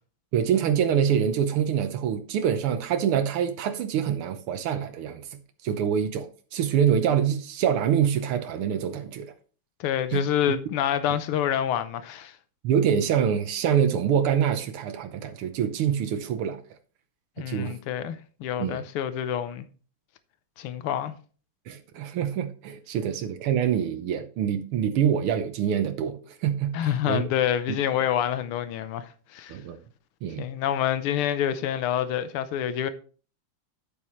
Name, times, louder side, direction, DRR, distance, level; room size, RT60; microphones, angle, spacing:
voice 1, 0.3-5.3 5.6-6.3 6.5-9.3 10.1-10.2 12.6-16.6 17.4-17.8 18.6-18.8 21.7-27.2 29.5-29.8 30.2-30.4, right 8 dB, 85° right, 1.8 m, -25 dB
voice 2, 9.8-12.3 17.4-19.7 20.6-21.1 26.7-29.6 30.4-32.9, left 10 dB, 85° left, 1.7 m, -27 dB
9.0 x 8.4 x 3.1 m
omnidirectional pair, 2.3 m